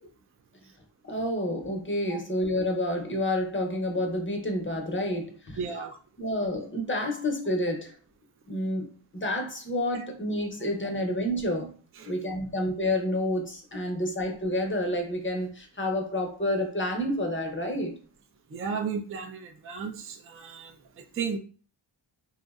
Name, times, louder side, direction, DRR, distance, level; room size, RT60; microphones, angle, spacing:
voice 1, 1.0-5.6 6.2-8.0 8.5-11.7 12.0-18.0, left 1 dB, 25° left, 0.6 m, -29 dB
voice 2, 5.6-6.0 12.0-12.1 18.5-21.4, right 5 dB, 30° right, 0.4 m, -34 dB
2.6 x 2.0 x 2.3 m
cardioid pair, 55°, 47 cm